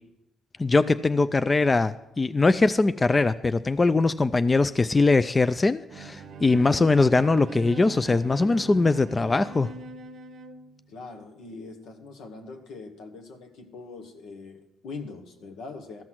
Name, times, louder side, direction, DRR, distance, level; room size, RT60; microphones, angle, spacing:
voice 1, 0.6-9.7, left 3 dB, 25° left, 13 dB, 0.3 m, -21 dB
Bowed string instrument, 5.9-10.8, right 4 dB, 65° right, 0.6 m, -41 dB
voice 2, 6.5-6.9 10.9-16.0, left 3 dB, 80° left, 5 dB, 1.3 m, -42 dB
14.0 x 6.0 x 6.0 m, 0.89 s
cardioid pair, 90°, 0 cm